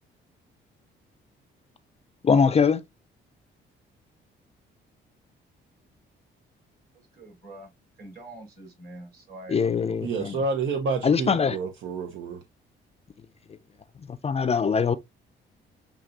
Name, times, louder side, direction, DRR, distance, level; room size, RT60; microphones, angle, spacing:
voice 1, 2.2-2.8 9.5-10.4 11.0-11.6 14.1-14.9, left 6 dB, 30° left, 0.4 m, -22 dB
voice 2, 6.9-7.7 8.0-10.0, right 2 dB, 50° right, 3.6 m, -45 dB
voice 3, 10.0-12.4, right 4 dB, 75° right, 0.8 m, -29 dB
7.1 x 2.8 x 2.5 m
cardioid pair, 90°, 20 cm